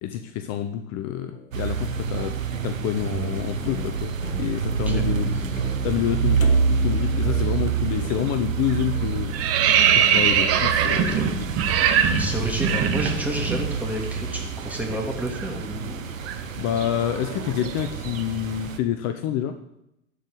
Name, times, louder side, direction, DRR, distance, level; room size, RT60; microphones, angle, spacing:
voice 1, 0.0-2.4 2.6-5.3 5.8-9.3 9.9-11.5 16.6-19.6, left 10 dB, 40° left, 9 dB, 0.8 m, -28 dB
sound 1, 1.3-12.5, left 5 dB, 75° left, 1.5 m, -40 dB
sound 2, 1.5-18.8, right 6 dB, 85° right, 1.0 m, -27 dB
voice 2, 4.7-5.0 11.0-11.3 12.2-16.0, equal, 5° right, 0 dB, 2.8 m, -30 dB
sound 3, 8.1-8.4 8.7-13.6 13.9-14.1 14.4-18.5, right 8 dB, 35° right, 1.3 m, -23 dB
12.0 x 5.0 x 7.9 m, 0.82 s
figure-of-eight pair, 85°, 39 cm